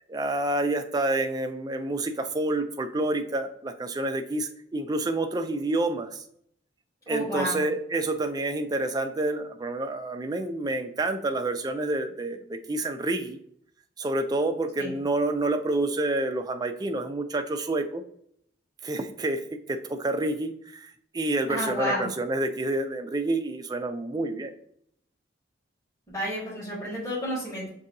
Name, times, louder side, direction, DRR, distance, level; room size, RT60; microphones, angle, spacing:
voice 1, 0.1-6.2 7.1-13.4 14.0-18.0 18.8-24.5, right 2 dB, 20° right, 6 dB, 0.3 m, -28 dB
voice 2, 7.1-7.6 14.8-14.9 21.5-22.1 26.1-27.7, equal, 15° left, -7 dB, 1.5 m, -31 dB
6.3 x 2.7 x 2.6 m, 0.70 s
head